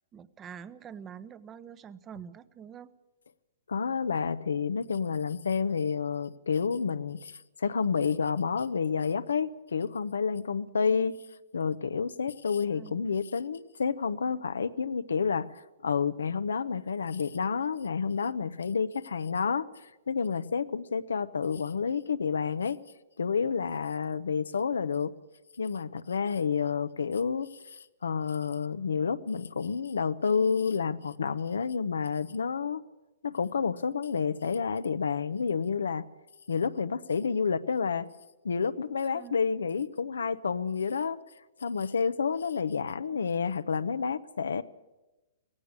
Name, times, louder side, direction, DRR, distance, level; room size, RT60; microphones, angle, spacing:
voice 1, 0.1-2.9 12.7-13.1 39.0-39.4, right 8 dB, 20° right, 16 dB, 0.9 m, -46 dB
voice 2, 3.7-11.2 11.5-15.5 15.8-19.7 20.1-22.8 23.2-25.1 25.6-32.8 33.2-36.1 36.5-38.1 38.4-41.2 41.6-44.6, left 6 dB, 90° left, 12 dB, 0.8 m, -29 dB
17.0 x 16.0 x 9.6 m, 1.0 s
hypercardioid pair, 135°, 0 cm